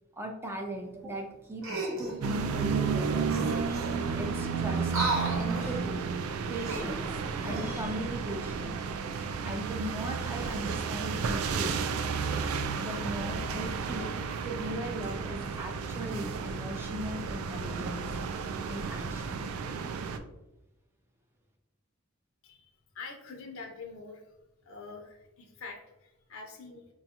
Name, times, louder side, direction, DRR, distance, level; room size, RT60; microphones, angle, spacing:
voice 1, 0.1-3.3 3.6-4.9 5.3-6.0 6.5-8.8 9.5-11.8 12.8-18.1 18.7-19.5, right 1 dB, 10° right, 2 dB, 0.3 m, -39 dB
sound 1, 1.6-2.2 3.0-3.1 3.3-4.2 4.8-5.9 6.5-7.9 8.4-8.6, right 2 dB, 70° right, 0.9 m, -34 dB
sound 2, 2.2-20.2, right 5 dB, 90° right, 0.3 m, -32 dB
voice 2, 22.4-24.4 24.6-26.9, left 4 dB, 75° left, 2 dB, 0.5 m, -45 dB
3.9 x 2.3 x 2.8 m, 0.95 s
head